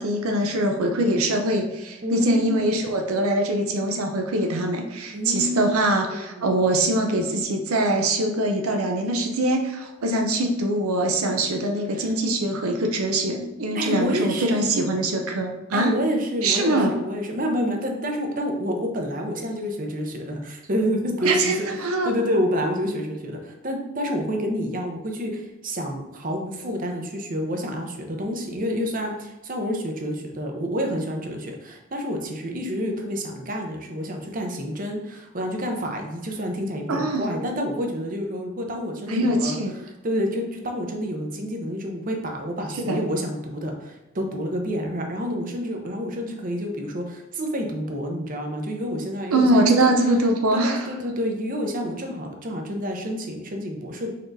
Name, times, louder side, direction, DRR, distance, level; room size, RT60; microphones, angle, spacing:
voice 1, 0.0-15.9 16.4-16.9 21.2-22.1 36.9-37.2 39.1-39.7 42.9-43.0 49.3-50.9, right 1 dB, 90° right, 3 dB, 0.6 m, -23 dB
voice 2, 2.0-2.8 5.1-6.5 11.9-12.1 13.7-14.7 15.7-21.7 22.0-49.9 50.5-54.1, equal, 40° right, 2 dB, 0.7 m, -28 dB
4.6 x 4.2 x 2.6 m, 1.0 s
head